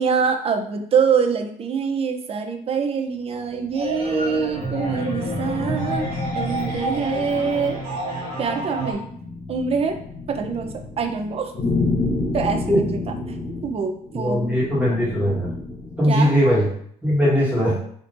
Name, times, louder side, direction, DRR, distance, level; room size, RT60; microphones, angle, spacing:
voice 1, 0.0-7.8 8.4-9.1 9.5-10.0 10.3-11.5 12.3-13.0 13.6-14.6 16.1-16.4, right 6 dB, 35° right, 6 dB, 0.5 m, -24 dB
sound 1, 3.5-16.1, left 3 dB, 40° left, 1.1 m, -30 dB
sound 2, 3.7-8.9, right 1 dB, 75° right, 1.3 m, -29 dB
voice 2, 14.1-15.5 16.0-16.7 17.0-17.8, equal, 10° right, -7 dB, 1.3 m, -19 dB
3.6 x 2.8 x 2.5 m, 0.64 s
cardioid pair, 110°, 17 cm